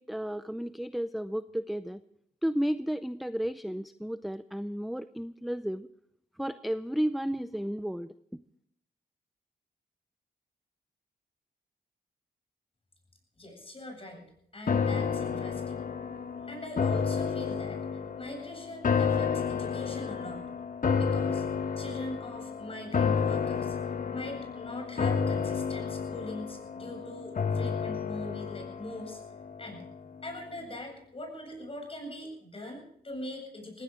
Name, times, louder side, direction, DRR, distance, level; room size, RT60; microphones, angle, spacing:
voice 1, 0.0-2.0 2.4-5.9 6.4-8.1, equal, ahead, 12 dB, 0.5 m, -33 dB
voice 2, 13.4-14.2 14.5-15.8 16.4-17.8 18.2-20.4 21.0-21.5 21.8-29.2 29.6-29.8 30.2-33.8, left 1 dB, 35° left, 3 dB, 7.9 m, -42 dB
sound 1, 14.7-30.0 30.3-30.4, left 6 dB, 55° left, 1.3 m, -31 dB
20.0 x 16.5 x 3.8 m, 0.69 s
cardioid pair, 75°, 17 cm